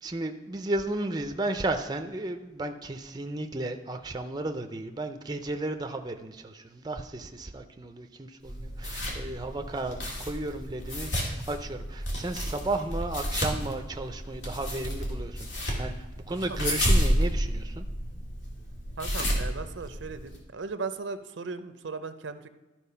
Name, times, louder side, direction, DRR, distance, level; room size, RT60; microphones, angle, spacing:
voice 1, 0.0-17.9, right 2 dB, 20° right, 6 dB, 0.5 m, -34 dB
sound 1, 8.4-20.4, equal, 80° left, 2.1 m, -31 dB
voice 2, 19.0-22.5, right 4 dB, 80° right, 11 dB, 0.6 m, -37 dB
12.5 x 4.4 x 5.6 m, 1.2 s
head